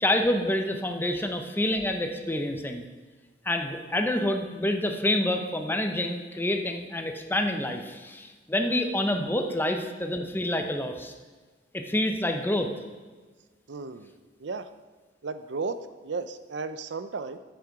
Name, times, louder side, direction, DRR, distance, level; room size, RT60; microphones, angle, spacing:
voice 1, 0.0-2.9 3.4-11.1 11.7-12.7, left 1 dB, 10° left, 4 dB, 0.8 m, -27 dB
voice 2, 13.7-14.1 14.4-14.7 15.2-17.4, right 4 dB, 80° right, 11 dB, 0.6 m, -35 dB
10.5 x 7.8 x 4.7 m, 1.4 s
head